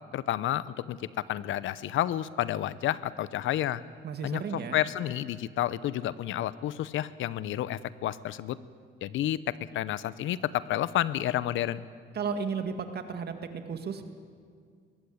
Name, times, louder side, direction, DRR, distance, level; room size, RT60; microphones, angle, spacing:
voice 1, 0.1-3.8 4.2-8.6 9.0-11.8, left 12 dB, 80° left, 17 dB, 0.8 m, -30 dB
voice 2, 4.0-4.8 12.1-13.3 13.7-14.1, right 6 dB, 55° right, 7 dB, 2.1 m, -33 dB
21.5 x 16.0 x 8.6 m, 2.1 s
cardioid pair, 90°, 20 cm